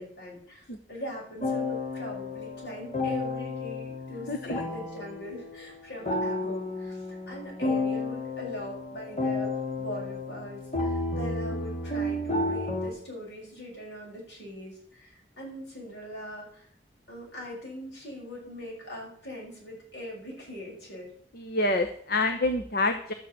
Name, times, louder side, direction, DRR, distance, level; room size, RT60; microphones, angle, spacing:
voice 1, 0.0-16.7 17.1-21.1, equal, 75° left, -3 dB, 6.6 m, -41 dB
sound 1, 1.4-12.9, left 2 dB, 40° left, 2.2 m, -32 dB
voice 2, 4.3-4.6 21.4-23.1, left 2 dB, 55° left, 6 dB, 1.0 m, -27 dB
12.0 x 6.1 x 8.8 m, 0.62 s
head